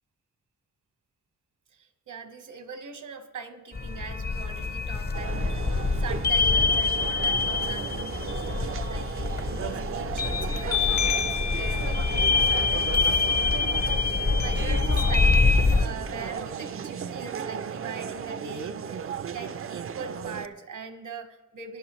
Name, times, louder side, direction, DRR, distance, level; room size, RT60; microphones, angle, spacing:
voice 1, 1.7-15.4 15.8-21.8, right 4 dB, 80° right, 8 dB, 1.1 m, -42 dB
sound 1, 3.7-15.9, left 4 dB, 35° left, 0.6 m, -25 dB
sound 2, 5.1-20.5, right 7 dB, 45° right, 0.4 m, -35 dB
19.5 x 11.0 x 3.1 m, 1.2 s
wide cardioid pair, 150°, 30 cm